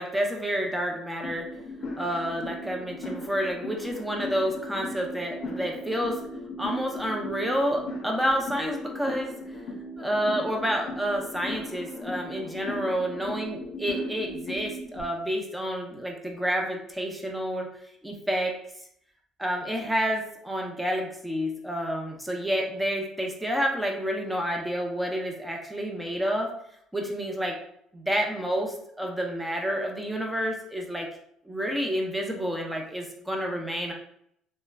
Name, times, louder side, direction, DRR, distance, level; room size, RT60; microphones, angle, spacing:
voice 1, 0.0-1.4 2.0-6.2 6.6-9.3 10.0-17.7 18.0-18.5 19.4-26.5 26.9-27.6 27.9-31.1 31.4-33.9, equal, 5° right, 1 dB, 0.6 m, -29 dB
sound 1, 1.2-15.0, left 1 dB, 60° left, 0.6 m, -37 dB
2.9 x 2.1 x 2.3 m, 0.70 s
supercardioid pair, 75°, 0 cm